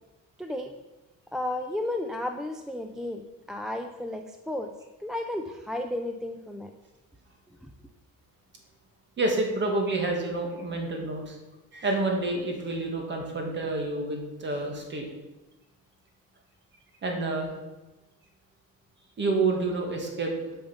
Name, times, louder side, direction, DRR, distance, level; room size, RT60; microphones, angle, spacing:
voice 1, 0.4-0.7 1.3-3.2 3.5-4.7 5.0-6.7 7.6-7.7, left 1 dB, ahead, 5 dB, 0.3 m, -33 dB
voice 2, 9.2-11.4 11.7-15.0 17.0-17.5 19.2-20.5, right 2 dB, 35° right, 2 dB, 1.9 m, -28 dB
8.7 x 5.5 x 7.0 m, 1.1 s
cardioid pair, 180°, 33 cm